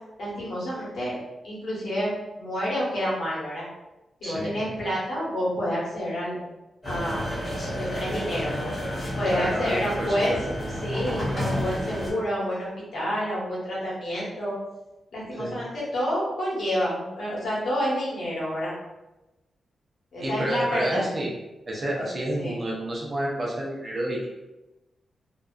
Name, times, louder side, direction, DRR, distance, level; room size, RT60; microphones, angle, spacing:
voice 1, 0.2-1.2 1.4-3.6 4.2-6.4 6.8-7.3 7.7-8.7 9.2-10.4 10.8-14.5 15.1-18.7 20.1-21.0 22.0-22.1 22.4-22.6, equal, 75° left, -6 dB, 1.2 m, -29 dB
voice 2, 4.2-4.6 9.3-10.4 15.3-15.6 20.2-21.3 21.7-24.3, right 1 dB, 35° right, -3 dB, 0.6 m, -29 dB
sound 1, 6.8-12.1, equal, 20° left, 1.0 m, -31 dB
2.6 x 2.3 x 2.4 m, 1.0 s
wide cardioid pair, 150°, 0 cm